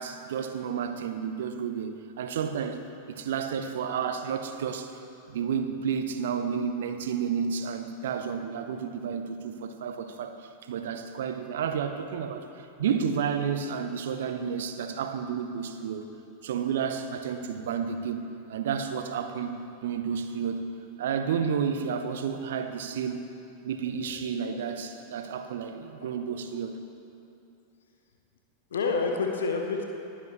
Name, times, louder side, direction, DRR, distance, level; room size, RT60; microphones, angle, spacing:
voice 1, 0.0-2.8 3.1-4.9 5.3-16.0 16.4-20.6 21.0-23.3 23.6-26.8, right 7 dB, 60° right, 8 dB, 0.7 m, -31 dB
voice 2, 28.7-29.8, left 4 dB, 65° left, 2 dB, 0.9 m, -28 dB
20.0 x 7.3 x 3.1 m, 2.7 s
figure-of-eight pair, 90°, 0 cm